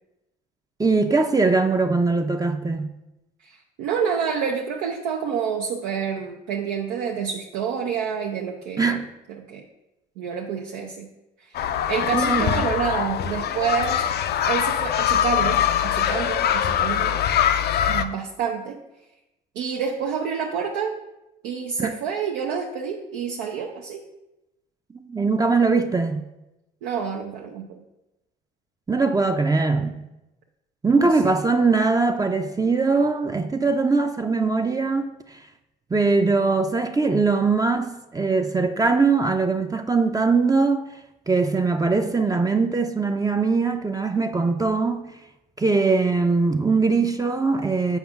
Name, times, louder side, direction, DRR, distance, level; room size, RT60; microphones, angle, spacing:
voice 1, 0.8-2.9 8.8-9.1 12.1-12.6 21.8-21.9 25.1-26.2 28.9-30.0 30.8-35.4 35.9-40.8 41.3-45.1 45.6-48.0, right 4 dB, 15° right, 0.5 m, -21 dB
voice 2, 3.4-9.0 9.3-9.6 10.2-11.1 11.5-11.6 11.9-14.0 14.5-17.2 17.9-18.8 19.6-21.0 21.4-24.0 26.8-27.8 31.0-31.3, right 6 dB, 80° right, 0.6 m, -28 dB
sound 1, 11.5-18.0, left 10 dB, 50° left, 0.4 m, -23 dB
7.9 x 5.0 x 2.4 m
hypercardioid pair, 55°, 21 cm